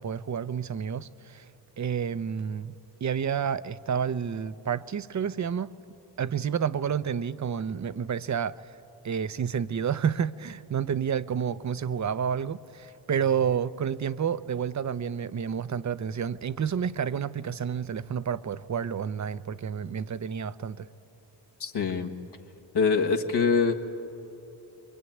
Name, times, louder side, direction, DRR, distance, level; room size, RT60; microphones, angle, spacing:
voice 1, 0.0-1.4 1.8-2.7 3.0-5.7 6.2-8.6 9.0-20.9, right 7 dB, 45° right, 0.7 m, -30 dB
voice 2, 21.6-22.1 22.7-23.7, left 5 dB, 70° left, 1.7 m, -24 dB
23.5 x 23.0 x 9.4 m
cardioid pair, 65°, 41 cm